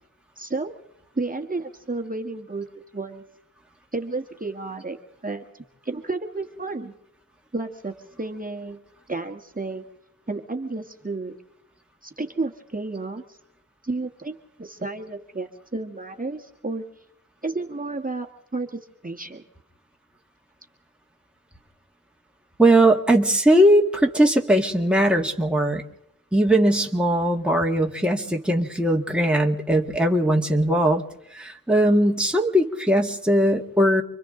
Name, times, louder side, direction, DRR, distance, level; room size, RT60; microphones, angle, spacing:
voice 1, 0.4-0.7 1.2-2.7 2.9-3.2 3.9-5.0 5.2-6.9 7.5-8.8 9.1-9.8 10.3-11.3 12.0-13.4 13.8-16.8 17.4-18.3 18.5-19.4, right 3 dB, 25° right, 2 dB, 1.7 m, -31 dB
voice 2, 22.6-25.8 26.3-31.0 31.3-34.0, right 1 dB, 5° right, 1 dB, 1.9 m, -19 dB
29.5 x 23.5 x 3.9 m, 0.80 s
cardioid pair, 55°, 36 cm